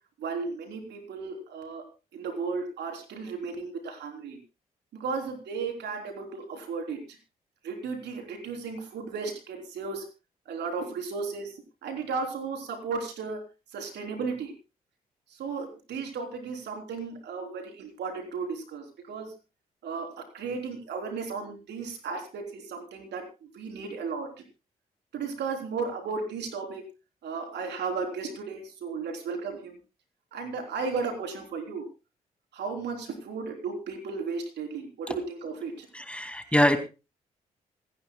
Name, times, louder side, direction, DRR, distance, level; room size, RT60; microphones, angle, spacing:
voice 1, 0.2-1.9 2.1-4.4 4.9-7.0 7.6-10.1 10.5-11.5 11.8-13.4 13.7-14.5 15.4-19.3 19.8-24.3 25.1-26.8 27.2-29.8 30.3-31.9 32.5-35.9, right 4 dB, 65° right, 3 dB, 3.6 m, -34 dB
voice 2, 35.9-36.8, left 1 dB, 5° left, 7 dB, 2.4 m, -24 dB
26.5 x 11.5 x 2.3 m, 0.30 s
hypercardioid pair, 40°, 19 cm